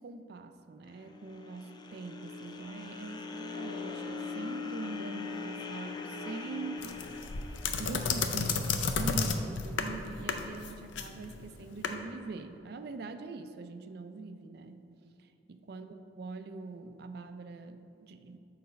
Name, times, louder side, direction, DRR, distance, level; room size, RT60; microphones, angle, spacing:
voice 1, 0.0-7.3 7.8-14.9 15.2-18.4, right 3 dB, 60° right, 8 dB, 0.4 m, -43 dB
sound 1, 0.9-9.1, left 4 dB, 25° left, 0.3 m, -41 dB
sound 2, 6.8-11.9, left 5 dB, 90° left, 0.5 m, -32 dB
6.8 x 4.1 x 5.1 m, 2.7 s
head